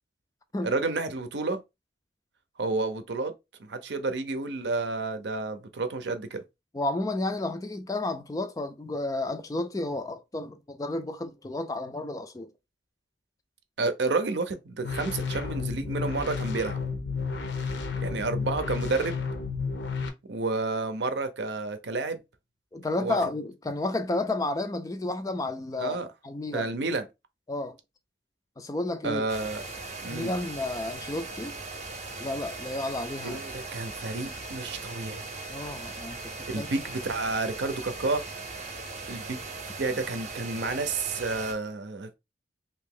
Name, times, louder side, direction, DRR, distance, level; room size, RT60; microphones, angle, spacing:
voice 1, 0.6-1.6 2.6-3.3 3.6-6.4 13.8-16.8 18.0-19.2 20.3-22.2 23.0-23.2 25.8-26.1 26.5-27.1 29.0-29.6 30.0-30.3 33.2-35.2 36.5-38.3 39.1-39.4 39.8-42.1, right 3 dB, 75° right, 0.6 m, -30 dB
voice 2, 6.7-12.5 17.9-18.0 22.7-26.0 26.2-26.7 27.5-27.8 28.6-29.2 30.1-31.5 32.2-33.4 35.5-36.7, left 2 dB, 20° left, 0.3 m, -31 dB
sound 1, 14.8-20.1, left 4 dB, 80° left, 0.7 m, -32 dB
sound 2, 29.3-41.5, right 3 dB, 40° right, 0.7 m, -39 dB
2.9 x 2.6 x 3.7 m
head